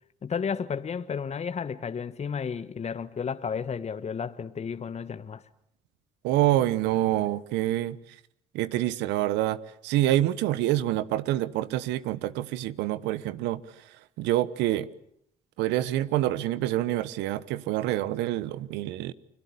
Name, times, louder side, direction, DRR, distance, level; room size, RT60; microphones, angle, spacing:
voice 1, 0.2-5.4, left 6 dB, 40° left, 1.3 m, -32 dB
voice 2, 6.2-8.0 8.5-13.6 14.2-14.9 15.6-19.1, right 14 dB, 80° right, 1.2 m, -26 dB
29.5 x 21.5 x 8.5 m
supercardioid pair, 70°, 18 cm